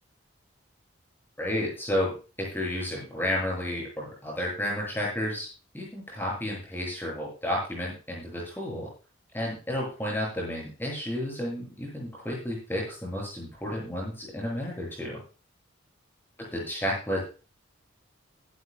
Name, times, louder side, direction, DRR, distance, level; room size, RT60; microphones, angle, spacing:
voice 1, 1.4-5.5 5.7-8.9 9.3-15.2 16.5-17.2, left 1 dB, 10° left, -3 dB, 7.8 m, -31 dB
16.5 x 12.5 x 2.3 m, 0.34 s
head